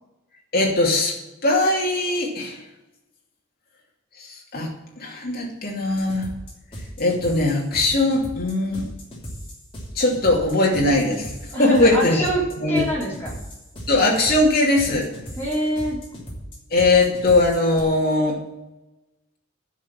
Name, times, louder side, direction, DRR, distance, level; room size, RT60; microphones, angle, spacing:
voice 1, 0.5-1.1 1.4-2.6 4.2-4.7 5.0-6.3 7.0-8.8 9.9-12.3 12.6-12.8 13.9-15.1 16.7-18.4, left 2 dB, 50° left, -2 dB, 2.6 m, -20 dB
sound 1, 5.9-17.8, equal, 25° left, 3.0 m, -37 dB
voice 2, 11.5-13.4 15.4-16.0, right 1 dB, 10° left, -4 dB, 3.1 m, -26 dB
10.5 x 5.6 x 8.6 m, 1.0 s
head